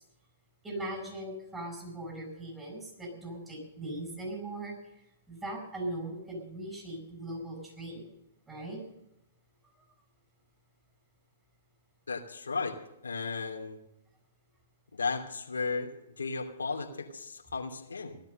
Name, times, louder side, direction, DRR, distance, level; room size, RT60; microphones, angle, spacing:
voice 1, 0.6-4.8 5.3-8.1 8.5-8.8, right 1 dB, 10° right, 2 dB, 7.3 m, -39 dB
voice 2, 12.1-12.8 13.0-13.8 14.9-18.2, left 4 dB, 85° left, 1 dB, 2.8 m, -35 dB
17.0 x 12.0 x 6.7 m, 0.84 s
hypercardioid pair, 120°, 0 cm